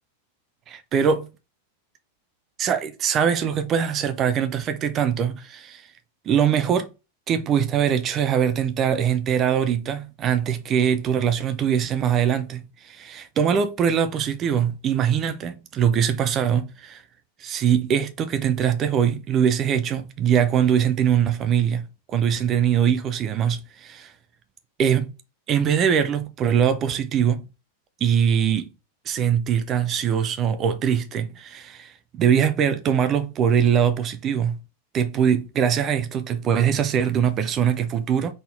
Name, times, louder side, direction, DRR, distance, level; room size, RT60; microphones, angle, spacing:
voice 1, 0.7-1.3 2.6-5.8 6.3-6.9 7.3-17.0 17.4-24.1 24.8-25.1 25.5-27.5 28.0-28.7 29.1-34.6 34.9-38.3, right 8 dB, 30° right, 0.6 m, -22 dB
4.0 x 3.9 x 3.2 m
figure-of-eight pair, 90°, 0 cm